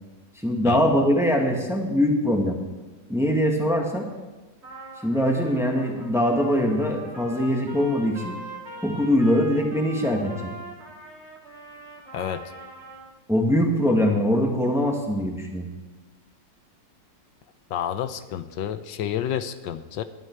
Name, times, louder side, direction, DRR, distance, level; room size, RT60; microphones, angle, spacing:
voice 1, 0.4-2.6 3.1-4.1 5.0-8.4 8.8-10.5 13.3-15.7, equal, ahead, 1 dB, 1.8 m, -22 dB
Trumpet, 4.6-13.1, right 2 dB, 35° right, 2.6 m, -42 dB
voice 2, 12.1-12.4 17.7-20.0, left 10 dB, 80° left, 11 dB, 1.4 m, -29 dB
19.5 x 11.5 x 4.7 m, 1.2 s
omnidirectional pair, 2.0 m